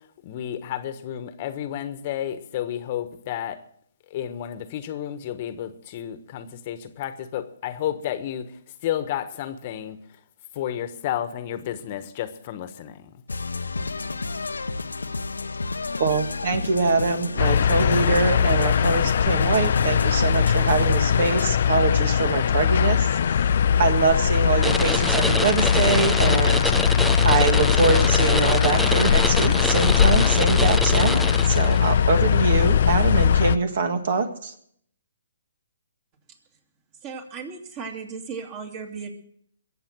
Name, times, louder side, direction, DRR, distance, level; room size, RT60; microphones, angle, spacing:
voice 1, 0.2-3.6 4.1-10.0 10.5-13.1, left 11 dB, 40° left, 11 dB, 1.2 m, -31 dB
sound 1, 13.3-21.5, left 3 dB, 85° left, 0.8 m, -31 dB
voice 2, 16.0-23.4 23.8-26.6 27.2-34.5, right 4 dB, 55° right, 8 dB, 1.8 m, -24 dB
sound 2, 17.4-33.6, left 8 dB, 55° left, 0.5 m, -20 dB
sound 3, 24.6-31.9, equal, ahead, 0.5 m, -26 dB
voice 3, 37.0-39.1, right 5 dB, 30° right, 5 dB, 2.7 m, -35 dB
22.5 x 8.0 x 6.2 m, 0.65 s
hypercardioid pair, 140°, 0 cm